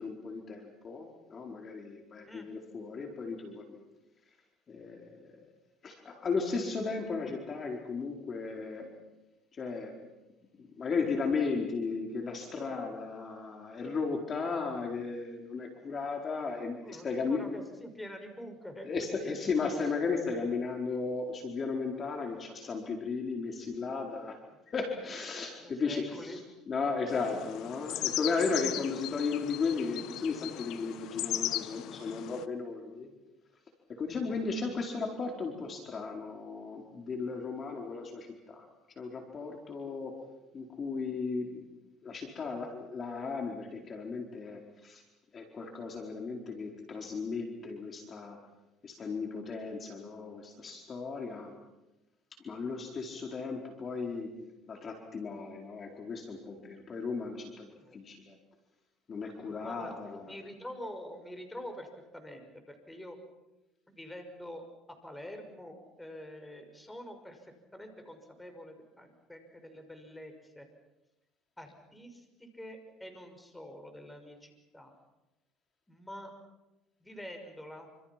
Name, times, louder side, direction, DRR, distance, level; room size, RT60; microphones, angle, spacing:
voice 1, 0.0-3.8 4.7-5.3 5.8-8.9 9.5-10.0 10.6-17.4 18.8-24.4 24.7-26.4 26.7-33.1 34.0-38.7 39.0-40.1 40.5-41.7 42.0-45.0 45.3-48.4 48.8-51.5 52.4-54.3 54.7-58.3 59.1-60.3, left 4 dB, 35° left, 2 dB, 4.5 m, -35 dB
voice 2, 16.8-19.4 19.8-19.9 25.6-26.4 34.2-34.8 57.7-58.0 59.5-63.2 63.9-70.7 71.6-74.9 75.9-76.3 77.0-77.9, equal, 10° left, 5 dB, 5.8 m, -46 dB
sound 1, 27.1-32.4, left 14 dB, 65° left, 1.0 m, -37 dB
28.0 x 26.5 x 6.0 m, 1.0 s
supercardioid pair, 95°, 0 cm